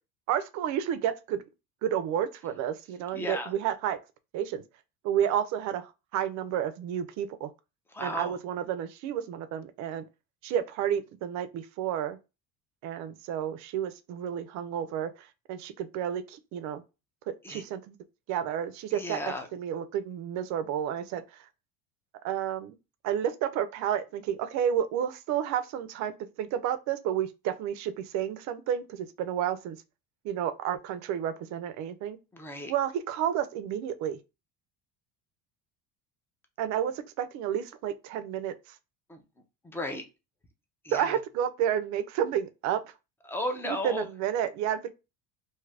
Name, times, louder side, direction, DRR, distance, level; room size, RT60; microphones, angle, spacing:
voice 1, 0.3-1.4 1.8-4.0 4.3-4.6 5.0-7.5 8.0-10.0 10.4-12.2 12.8-15.1 15.5-16.8 17.3-18.0 18.3-19.2 19.5-21.2 22.2-22.7 23.0-29.8 30.2-32.2 32.7-34.2 36.6-38.5 40.9-42.8 43.6-44.9, right 9 dB, 55° right, 0.5 m, -31 dB
voice 2, 3.1-3.5 7.9-8.4 17.4-17.6 18.9-19.5 32.3-32.7 39.1-39.2 39.6-40.0 40.8-41.2 43.3-44.1, left 1 dB, 5° left, 0.4 m, -34 dB
2.7 x 2.5 x 3.2 m
cardioid pair, 145°, 35 cm